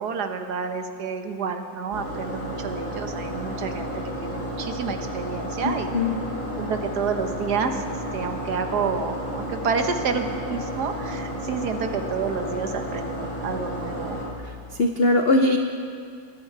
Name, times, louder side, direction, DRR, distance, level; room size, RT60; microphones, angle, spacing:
voice 1, 0.0-3.9 4.2-6.0 6.6-14.2, right 5 dB, 65° right, 6 dB, 1.4 m, -29 dB
sound 1, 1.9-14.3, equal, 40° left, 4.7 m, -32 dB
voice 2, 5.6-6.2 14.4-15.6, left 2 dB, 65° left, 5 dB, 0.5 m, -21 dB
19.0 x 14.0 x 4.6 m, 2.2 s
omnidirectional pair, 2.0 m